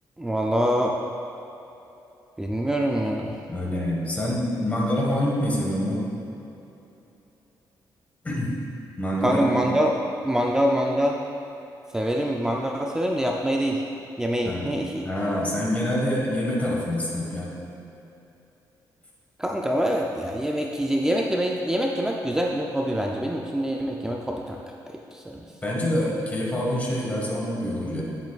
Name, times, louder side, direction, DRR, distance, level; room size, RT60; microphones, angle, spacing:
voice 1, 0.2-0.9 2.4-3.3 9.2-11.2 11.9-13.8 14.2-15.0 19.4-24.6 25.1-25.4, equal, 5° right, 0 dB, 0.4 m, -25 dB
voice 2, 3.5-6.0 8.2-8.5 9.0-9.7 14.4-14.7 15.0-17.5 25.6-28.0, left 1 dB, 20° left, -4 dB, 1.4 m, -26 dB
9.6 x 7.6 x 2.4 m, 3.0 s
cardioid pair, 140°, 8 cm